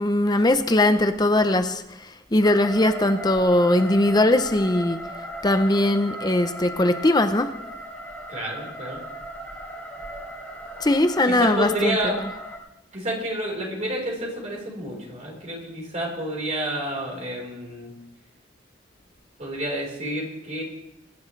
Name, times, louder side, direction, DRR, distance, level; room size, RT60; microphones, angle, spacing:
voice 1, 0.0-1.8 2.3-5.0 5.4-7.5 10.8-12.0, left 1 dB, 20° left, 9 dB, 0.7 m, -20 dB
sound 1, 2.4-12.6, right 1 dB, 5° left, 3.5 m, -37 dB
voice 2, 8.3-9.0 11.2-12.2 12.9-17.9 19.4-20.6, right 1 dB, 40° right, -2 dB, 4.4 m, -29 dB
22.5 x 11.5 x 3.3 m, 0.86 s
head